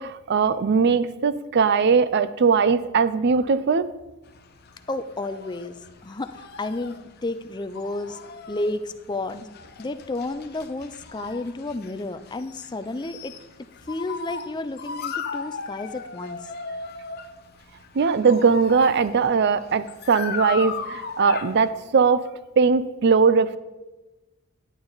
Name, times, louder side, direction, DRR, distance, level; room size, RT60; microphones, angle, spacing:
voice 1, 0.0-3.9 17.9-22.3 22.6-23.6, right 5 dB, 50° right, 15 dB, 0.4 m, -20 dB
sound 1, 4.3-21.7, left 5 dB, 50° left, 0.8 m, -37 dB
voice 2, 4.9-8.2 8.5-9.5 9.8-13.4 13.9-16.5, left 2 dB, 20° left, 10 dB, 0.5 m, -31 dB
11.0 x 8.6 x 4.0 m, 1.1 s
head